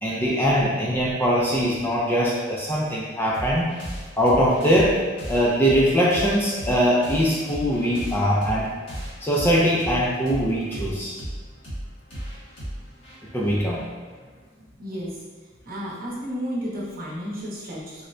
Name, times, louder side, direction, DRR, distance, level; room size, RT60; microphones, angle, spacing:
voice 1, 0.0-3.7 4.2-5.0 5.3-8.7 9.2-11.1 13.3-13.8, equal, 10° left, -5 dB, 0.3 m, -21 dB
sound 1, 3.3-14.4, equal, 75° left, 1.3 m, -36 dB
voice 2, 14.6-15.2 15.6-18.1, equal, 50° right, -7 dB, 0.9 m, -32 dB
4.1 x 2.1 x 2.5 m, 1.5 s
head